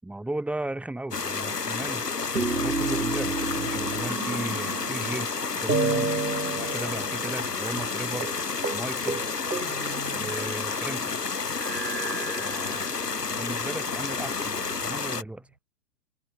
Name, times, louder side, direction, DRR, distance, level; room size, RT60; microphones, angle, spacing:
voice 1, 0.0-2.0 2.3-5.3 5.6-8.3 8.7-9.2 10.1-11.3 12.4-12.8 13.3-15.5, right 1 dB, 5° right, 7.5 m, -36 dB
sound 1, 1.1-15.2, left 4 dB, 75° left, 3.6 m, -30 dB
sound 2, 2.4-5.3 5.7-7.5 7.8-7.9 8.2-8.4 8.6-8.8 9.1-10.8 11.6-13.1 13.9-14.8, right 3 dB, 90° right, 2.5 m, -31 dB
open air
figure-of-eight pair, 130°, 48 cm